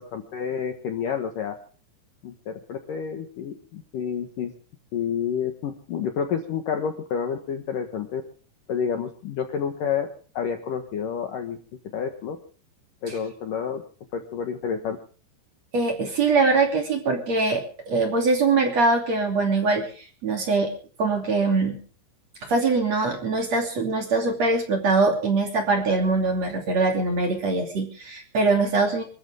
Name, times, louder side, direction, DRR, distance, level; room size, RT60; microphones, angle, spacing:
voice 1, 0.0-1.5 2.2-4.5 4.9-8.2 8.7-10.1 10.3-11.6 11.9-12.4 13.0-13.8 14.1-15.0, left 7 dB, 60° left, 6 dB, 2.4 m, -29 dB
voice 2, 15.7-20.7 21.0-21.8 22.5-29.0, right 3 dB, 40° right, 4 dB, 3.4 m, -23 dB
25.5 x 14.0 x 3.6 m, 0.40 s
omnidirectional pair, 5.6 m